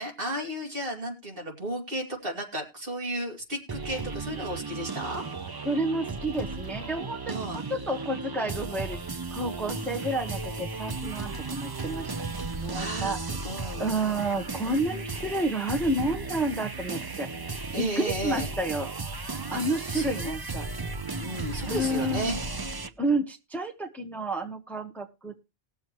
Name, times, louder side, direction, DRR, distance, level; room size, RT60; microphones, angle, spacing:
voice 1, 0.0-5.2 7.3-7.6 12.7-13.9 17.7-18.5 19.5-19.6 19.9-20.3 21.2-22.4, right 1 dB, 65° right, 1 dB, 2.6 m, -34 dB
sound 1, 3.7-22.9, right 3 dB, 25° right, 0.6 m, -35 dB
voice 2, 5.6-7.4 7.7-12.1 12.6-13.2 13.8-18.9 19.5-20.6 21.7-22.4 23.0-25.5, right 1 dB, ahead, 4 dB, 1.2 m, -30 dB
20.0 x 7.1 x 3.0 m, 0.26 s
omnidirectional pair, 1.0 m